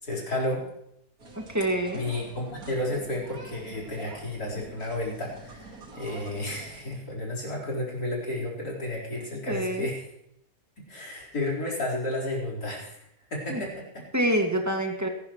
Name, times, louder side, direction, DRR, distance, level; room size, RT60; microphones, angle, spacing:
voice 1, 0.0-0.7 1.9-10.1 10.9-13.0 13.3-14.0, left 1 dB, 80° left, -2 dB, 4.9 m, -32 dB
sound 1, 1.2-6.8, right 2 dB, 70° right, 2.8 m, -46 dB
voice 2, 1.5-2.1 9.5-9.9 13.5-13.6 14.1-15.1, right 1 dB, 10° right, 2 dB, 2.0 m, -26 dB
22.0 x 12.5 x 3.1 m, 0.79 s
omnidirectional pair, 1.6 m